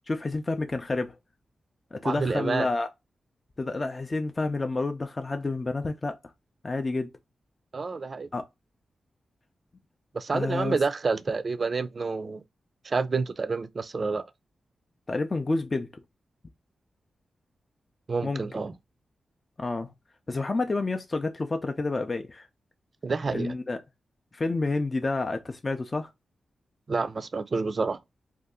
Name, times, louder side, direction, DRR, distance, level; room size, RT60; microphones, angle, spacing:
voice 1, 0.1-1.2 1.9-2.9 3.6-6.2 6.6-7.1 8.3-8.5 10.3-10.8 15.1-15.9 18.2-18.4 19.6-19.9 20.3-22.5 23.3-23.8 24.3-26.1, left 3 dB, 35° left, 0.4 m, -29 dB
voice 2, 2.0-2.7 7.7-8.3 10.1-12.4 12.8-14.3 18.1-18.7 23.0-23.5 26.9-28.0, right 4 dB, 50° right, 0.4 m, -28 dB
2.6 x 2.3 x 3.5 m
cardioid pair, 70°, 0 cm